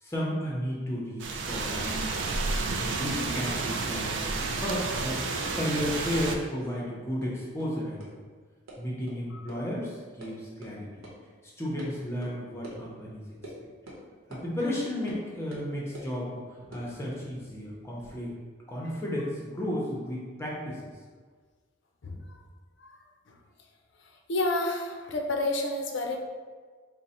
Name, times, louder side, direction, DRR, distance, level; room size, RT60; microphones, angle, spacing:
voice 1, 0.0-2.2 2.8-8.2 8.8-10.9 11.6-13.3 14.3-18.3 18.7-20.9, equal, 15° left, -5 dB, 0.6 m, -33 dB
sound 1, 1.2-6.4, right 3 dB, 60° right, 0.4 m, -31 dB
sound 2, 3.2-5.9 6.1-6.9 7.2-7.3 7.6-7.7 8.0-8.1 8.7-8.8 9.1-9.2 9.5-9.6 9.9-10.3 10.6-10.7 11.0-11.1 11.8-11.9 12.2-12.3 12.6-12.8 13.4-13.6 13.9-14.0 14.3-14.4 15.1-15.2 15.5-16.1 16.6-18.2, right 1 dB, 85° right, 0.9 m, -47 dB
voice 2, 22.0-22.4 22.8-23.4 24.0-26.2, left 2 dB, 60° left, 2 dB, 0.4 m, -31 dB
3.8 x 2.1 x 4.1 m, 1.5 s
head